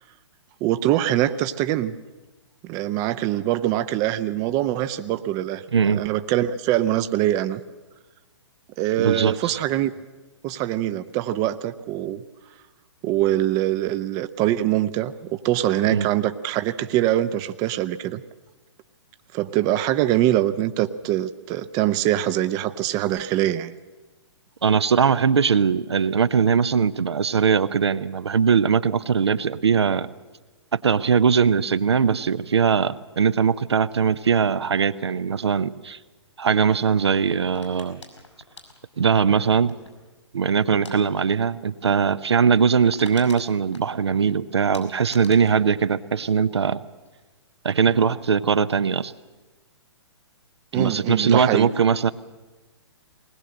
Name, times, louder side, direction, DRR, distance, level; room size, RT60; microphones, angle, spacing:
voice 1, 0.6-1.9 2.6-5.6 5.9-7.6 8.8-9.9 10.4-12.2 13.0-15.1 15.4-18.2 19.3-23.7 50.7-51.7, right 13 dB, 25° right, 12 dB, 0.7 m, -23 dB
voice 2, 5.7-6.0 9.0-9.6 15.9-16.1 24.6-30.1 30.7-36.0 36.4-38.0 39.0-39.8 40.3-46.8 47.6-49.1 50.7-52.1, right 6 dB, 65° right, 13 dB, 0.7 m, -20 dB
sound 1, 37.5-40.1 40.7-41.0 41.3-41.5 41.8-41.9 42.3-42.4 42.6-44.3 44.7-46.8 47.1-47.5, left 2 dB, 80° left, 5.6 m, -46 dB
20.0 x 20.0 x 7.7 m, 1.2 s
figure-of-eight pair, 120°, 15 cm